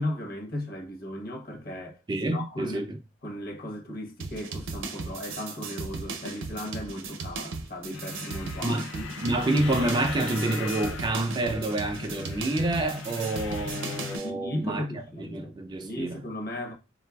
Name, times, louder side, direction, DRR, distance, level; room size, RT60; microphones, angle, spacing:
voice 1, 0.0-2.0 2.3-2.9 3.2-9.1 14.2-15.5 15.8-16.7, left 1 dB, 50° left, 0.8 m, -36 dB
voice 2, 2.1-3.0 8.6-8.9 9.2-14.9 15.3-16.2, right 2 dB, 25° right, 0.3 m, -28 dB
sound 1, 4.2-14.3, right 3 dB, 85° right, 0.5 m, -37 dB
sound 2, 7.9-14.2, left 5 dB, 85° left, 0.4 m, -38 dB
3.8 x 2.3 x 2.2 m
head